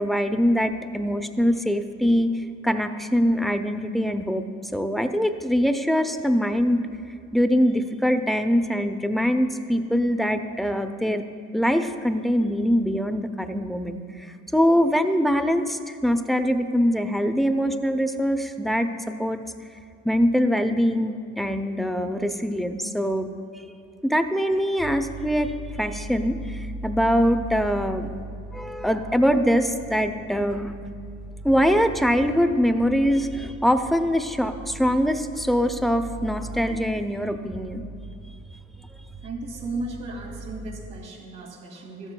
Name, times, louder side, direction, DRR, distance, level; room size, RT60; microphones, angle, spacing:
voice 1, 0.0-2.3 2.6-4.4 4.7-6.8 7.3-11.2 11.5-19.4 20.0-23.3 23.5-23.6 24.0-28.1 28.5-30.7 31.4-37.9, equal, ahead, 0.5 m, -23 dB
sound 1, 24.8-41.1, right 2 dB, 45° right, 1.4 m, -39 dB
voice 2, 39.2-42.1, right 2 dB, 90° right, 2.2 m, -35 dB
15.0 x 12.5 x 2.2 m
cardioid pair, 90°, 30 cm